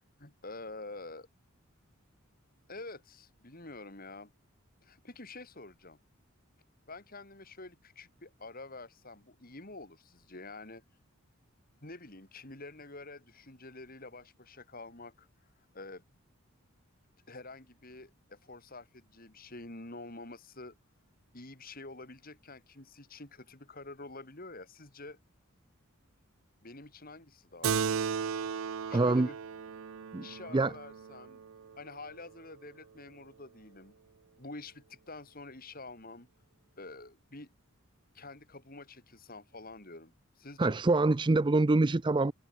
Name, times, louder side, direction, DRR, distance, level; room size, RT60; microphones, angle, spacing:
voice 1, 0.2-1.3 2.7-4.3 4.8-6.0 6.9-10.8 11.8-15.3 15.7-16.0 17.3-20.8 21.3-25.2 26.6-28.0 28.9-29.4 30.2-31.4 31.7-34.0 34.4-36.3 36.8-37.5 38.1-40.8, left 2 dB, 45° left, 3.9 m, -47 dB
Keyboard (musical), 27.6-32.5, right 6 dB, 75° right, 0.5 m, -36 dB
voice 2, 28.9-29.3 30.1-30.2 30.5-30.7 40.6-42.3, right 2 dB, 20° right, 0.4 m, -25 dB
head